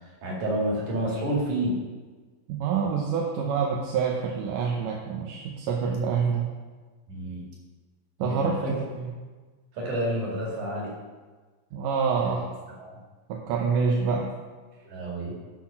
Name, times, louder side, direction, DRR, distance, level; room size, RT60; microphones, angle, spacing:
voice 1, 0.2-1.8 7.1-7.4 8.2-8.7 9.7-10.9 12.2-12.3 12.8-13.0 14.9-15.3, right 1 dB, 60° right, -4 dB, 3.6 m, -29 dB
voice 2, 2.5-6.5 8.2-9.1 11.7-12.5 13.3-14.3, right 6 dB, 75° right, -1 dB, 2.2 m, -27 dB
12.0 x 4.2 x 5.7 m, 1.3 s
omnidirectional pair, 4.1 m